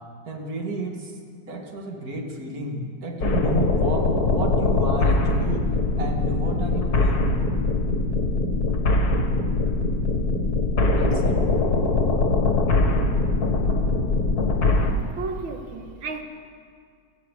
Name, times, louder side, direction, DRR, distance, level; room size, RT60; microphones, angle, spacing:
voice 1, 0.3-1.1 1.5-5.7 6.0-7.3 11.0-11.4, right 2 dB, 50° right, 1 dB, 2.8 m, -31 dB
sound 1, 3.2-14.9, left 3 dB, 55° left, 2.2 m, -22 dB
voice 2, 15.2-16.2, right 4 dB, 90° right, 5 dB, 2.4 m, -33 dB
30.0 x 10.5 x 8.4 m, 2.1 s
omnidirectional pair, 2.1 m